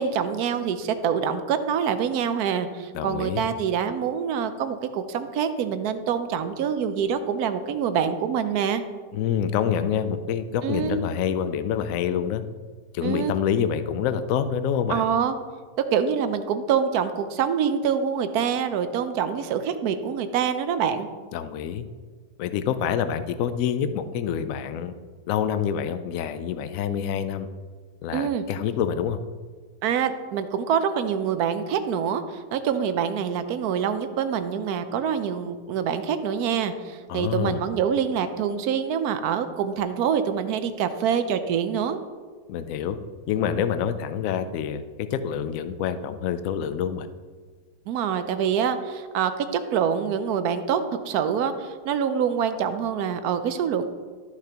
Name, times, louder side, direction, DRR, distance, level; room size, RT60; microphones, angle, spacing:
voice 1, 0.0-8.8 10.6-11.0 13.0-13.3 14.9-15.3 15.9-21.1 28.1-28.4 29.8-42.0 47.9-50.8 51.1-53.9, right 7 dB, 70° right, 10 dB, 1.0 m, -25 dB
voice 2, 2.9-3.4 9.1-12.4 12.9-15.0 21.3-21.8 22.4-24.9 25.3-27.5 28.0-29.2 37.1-37.6 42.5-43.0 43.3-47.1, left 8 dB, 70° left, 11 dB, 0.8 m, -27 dB
13.0 x 6.0 x 2.9 m, 1.5 s
omnidirectional pair, 1.9 m